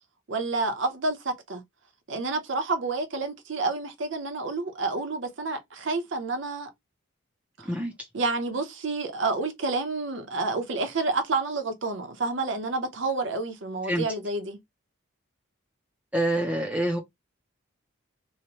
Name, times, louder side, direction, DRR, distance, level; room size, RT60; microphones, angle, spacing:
voice 1, 0.3-1.6 2.1-6.7 7.6-7.7 8.1-14.6, right 3 dB, 65° right, 0.7 m, -29 dB
voice 2, 16.1-17.0, right 1 dB, 5° right, 0.5 m, -26 dB
2.9 x 2.1 x 2.8 m
head